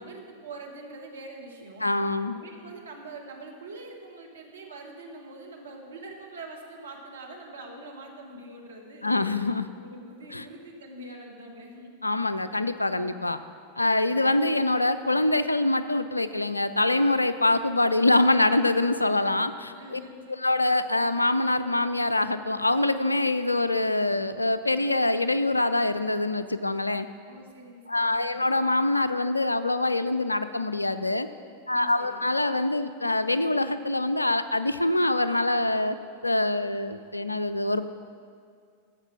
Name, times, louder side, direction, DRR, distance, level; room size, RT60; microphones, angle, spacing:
voice 1, 0.0-1.9 2.3-9.3 9.8-12.0 19.7-20.6 27.2-28.5 31.7-32.2, right 2 dB, 70° right, 0 dB, 1.5 m, -44 dB
voice 2, 1.8-2.4 9.0-9.7 10.3-10.5 12.0-13.4 13.8-20.0 20.4-27.1 27.9-31.3 31.7-36.0 36.2-37.9, left 2 dB, 85° left, 13 dB, 0.4 m, -24 dB
14.5 x 5.4 x 5.8 m, 2.2 s
figure-of-eight pair, 90°, 0 cm